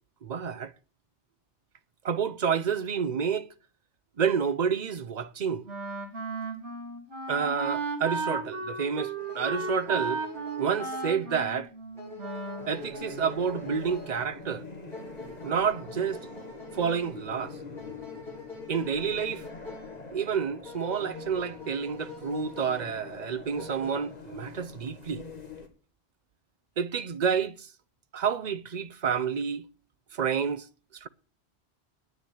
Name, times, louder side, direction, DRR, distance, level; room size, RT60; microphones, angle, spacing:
voice 1, 0.2-0.7 2.0-3.5 4.2-5.6 7.3-10.2 10.6-11.7 12.7-14.6 15.4-16.2 16.8-17.6 18.7-19.4 20.1-25.2 26.8-27.7 28.1-29.6 30.1-30.6 31.0-31.1, right 7 dB, 45° right, 0.8 m, -29 dB
Wind instrument woodwind instrument, 5.7-12.7, right 3 dB, 90° right, 3.0 m, -35 dB
sound 1, 9.2-23.9, left 2 dB, ahead, 7.3 m, -46 dB
sound 2, 12.6-25.7, left 3 dB, 35° left, 2.0 m, -44 dB
9.6 x 9.4 x 8.7 m
omnidirectional pair, 1.2 m